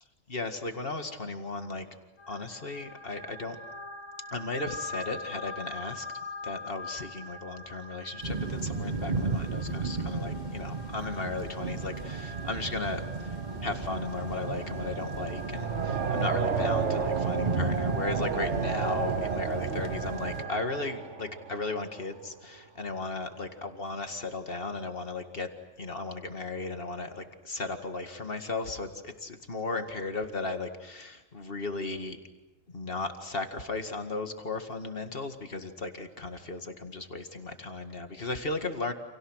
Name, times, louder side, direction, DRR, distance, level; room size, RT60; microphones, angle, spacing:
voice 1, 0.3-1.9 2.3-3.6 4.3-6.1 6.4-25.5 25.8-32.2 32.7-38.9, left 3 dB, 45° left, 6 dB, 2.2 m, -35 dB
sound 1, 2.2-20.9, left 1 dB, 75° left, 2.3 m, -44 dB
sound 2, 8.2-20.4, right 3 dB, 35° right, 1.2 m, -34 dB
sound 3, 11.5-22.3, right 6 dB, 60° right, 1.5 m, -34 dB
30.0 x 28.5 x 6.5 m, 1.0 s
omnidirectional pair, 1.4 m